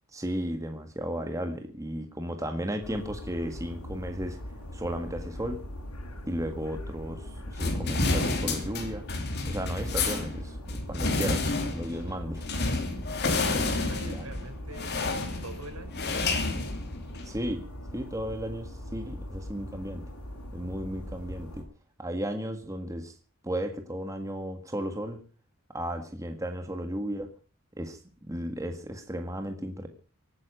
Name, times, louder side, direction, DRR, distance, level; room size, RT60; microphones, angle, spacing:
voice 1, 0.1-4.4 4.7-5.6 6.3-9.0 9.5-12.5 14.1-14.3 17.2-17.7 17.9-20.0 20.5-21.6 22.0-23.1 23.4-25.2 25.7-27.3 27.8-29.9, equal, 15° right, 6 dB, 1.6 m, -34 dB
sound 1, 2.8-21.6, left 1 dB, 85° left, 5.3 m, -41 dB
sound 2, 7.6-17.4, left 3 dB, 50° left, 3.0 m, -30 dB
voice 2, 13.9-16.0, right 2 dB, 80° right, 6 dB, 4.9 m, -44 dB
24.0 x 9.7 x 5.1 m, 0.39 s
head